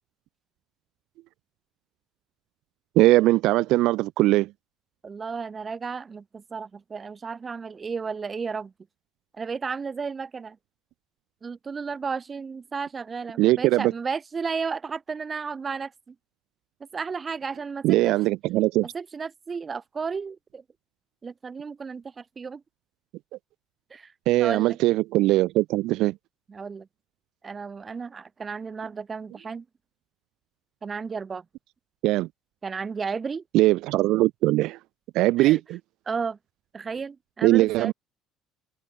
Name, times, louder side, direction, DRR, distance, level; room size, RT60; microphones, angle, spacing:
voice 1, 3.0-4.5 13.4-13.9 17.8-18.9 24.3-26.1 32.0-32.3 33.5-34.8 35.1-35.8 37.4-37.9, right 18 dB, 60° right, 0.5 m, -21 dB
voice 2, 5.0-8.7 9.3-10.6 11.4-16.1 16.8-18.1 18.8-20.6 21.2-22.6 23.9-24.8 26.5-26.9 27.4-29.6 30.8-31.4 32.6-33.4 35.4-35.6 36.1-36.4 36.7-37.9, right 5 dB, 20° right, 1.1 m, -33 dB
cardioid pair, 160°, 0 cm